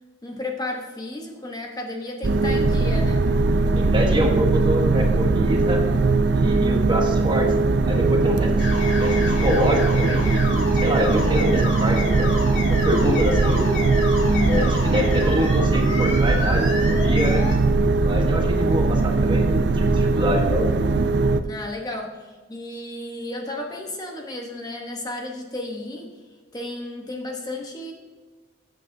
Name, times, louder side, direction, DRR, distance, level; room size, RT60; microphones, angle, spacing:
voice 1, 0.2-3.3 14.2-14.7 21.4-26.1 26.5-27.9, left 2 dB, 20° left, 1 dB, 1.0 m, -32 dB
sound 1, 2.2-21.4, right 3 dB, 60° right, 0.5 m, -20 dB
voice 2, 3.7-5.8 6.3-7.5 7.8-8.7 9.0-12.3 12.8-13.7 14.5-17.4 18.0-20.7, equal, 25° right, 1 dB, 1.3 m, -25 dB
sound 2, 8.6-17.6, left 2 dB, 75° left, 2.2 m, -31 dB
14.0 x 7.7 x 2.7 m, 1.4 s
head